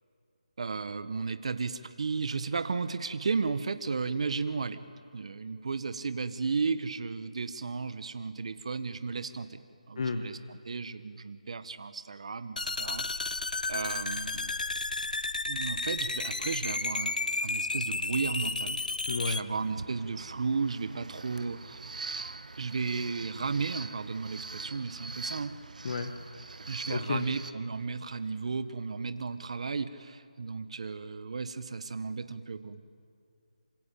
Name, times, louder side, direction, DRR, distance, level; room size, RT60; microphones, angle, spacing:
voice 1, 0.6-4.9 5.1-9.6 9.9-10.4 10.6-14.5 15.5-17.1 17.4-18.8 19.2-21.8 22.6-25.5 26.7-32.8, right 4 dB, 50° right, 11 dB, 1.6 m, -34 dB
voice 2, 9.9-10.3 19.1-19.5 25.8-26.2 26.9-27.3, left 4 dB, 45° left, 8 dB, 1.5 m, -32 dB
sound 1, 12.6-19.4, left 3 dB, 80° left, 0.9 m, -32 dB
sound 2, 19.5-27.5, right 3 dB, 70° right, 1.3 m, -43 dB
27.5 x 24.5 x 8.7 m, 2.4 s
figure-of-eight pair, 165°, 4 cm